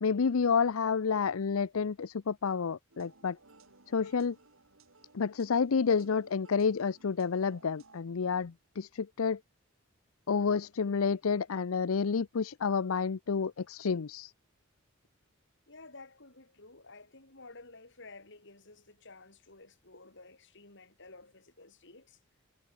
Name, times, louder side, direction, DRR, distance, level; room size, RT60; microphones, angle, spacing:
voice 1, 0.0-3.4 3.9-4.4 5.1-9.4 10.3-14.3, left 5 dB, 85° left, 0.6 m, -29 dB
sound 1, 2.9-8.0, right 3 dB, 75° right, 4.0 m, -60 dB
voice 2, 15.7-22.2, left 3 dB, 60° left, 6.9 m, -53 dB
head